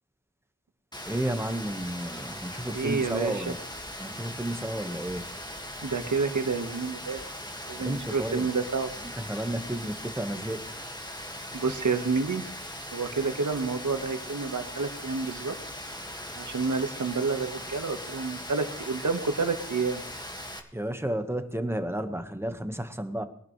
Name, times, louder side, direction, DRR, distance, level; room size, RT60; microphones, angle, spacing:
Rain, 0.9-20.6, equal, 15° left, 1.9 m, -40 dB
voice 1, 1.1-3.6 4.0-5.3 7.8-8.5 9.0-10.6 20.7-23.2, right 1 dB, 10° right, 7 dB, 1.4 m, -32 dB
voice 2, 2.7-3.5 5.8-7.2 7.7-8.9 11.5-12.4 12.9-15.5 16.4-20.0, right 4 dB, 80° right, 7 dB, 1.5 m, -29 dB
21.5 x 11.5 x 3.3 m, 0.66 s
wide cardioid pair, 55°, 30 cm